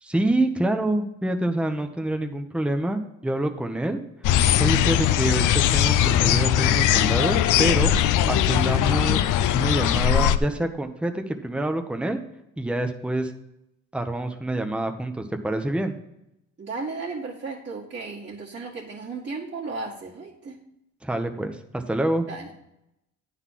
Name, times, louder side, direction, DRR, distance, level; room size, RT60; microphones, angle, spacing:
voice 1, 0.0-4.0 4.6-7.9 8.3-9.3 9.5-12.2 12.6-13.3 13.9-15.9 21.0-22.3, right 1 dB, 5° right, 5 dB, 0.9 m, -26 dB
sound 1, 4.2-10.4, left 11 dB, 80° left, 0.5 m, -20 dB
voice 2, 16.6-20.6 22.3-22.5, right 3 dB, 40° right, -7 dB, 1.9 m, -35 dB
9.6 x 4.1 x 7.4 m, 0.84 s
cardioid pair, 90°, 30 cm